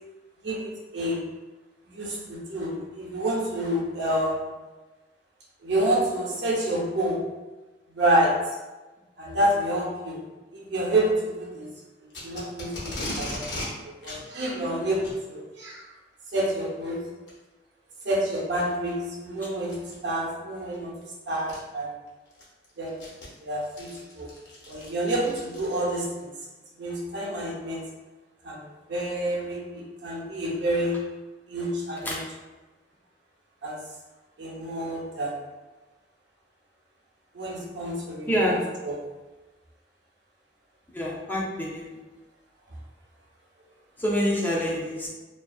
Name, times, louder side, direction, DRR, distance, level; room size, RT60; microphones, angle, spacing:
voice 1, 0.4-1.2 1.9-4.5 5.6-7.2 7.9-8.3 9.2-10.2 10.5-11.7 12.2-13.4 13.7-15.8 16.3-17.0 18.0-19.8 20.0-20.9 21.3-21.9 22.8-23.0 23.4-24.3 24.7-26.3 26.8-27.8 28.4-31.0 31.5-32.2 33.6-33.8 34.4-35.3 37.3-39.0, right 1 dB, 80° right, -4 dB, 0.7 m, -28 dB
Packing tape duct tape, 12.1-13.7 14.0-14.2 14.9-15.2 16.3-16.6 17.3-17.4 18.0-18.1 19.6-19.9 21.0-21.1 21.5-21.6 22.1-26.0, left 1 dB, 75° left, 0.8 m, -37 dB
voice 2, 40.9-41.8 44.0-45.1, equal, 10° left, -5 dB, 0.4 m, -26 dB
2.5 x 2.4 x 2.3 m, 1.2 s
head